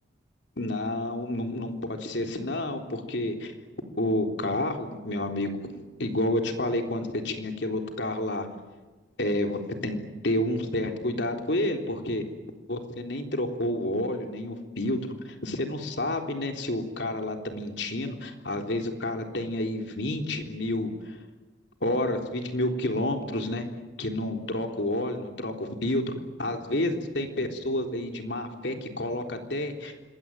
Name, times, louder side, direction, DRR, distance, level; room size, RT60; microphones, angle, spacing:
voice 1, 0.6-3.5 4.0-8.5 9.2-10.0 10.2-12.2 12.7-21.2 21.8-23.7 24.0-26.1 26.4-29.9, left 1 dB, 65° left, 4 dB, 3.6 m, -29 dB
26.0 x 21.5 x 9.2 m, 1.2 s
head